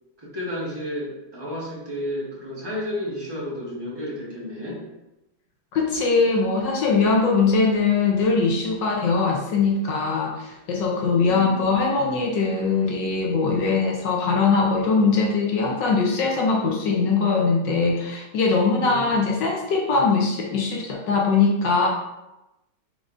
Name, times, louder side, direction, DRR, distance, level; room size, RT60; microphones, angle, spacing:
voice 1, 0.2-4.8 11.1-11.7 18.8-19.3, left 1 dB, 15° right, -6 dB, 1.0 m, -32 dB
voice 2, 5.7-21.9, left 4 dB, 70° left, -1 dB, 1.2 m, -21 dB
5.3 x 3.6 x 2.5 m, 0.95 s
omnidirectional pair, 2.3 m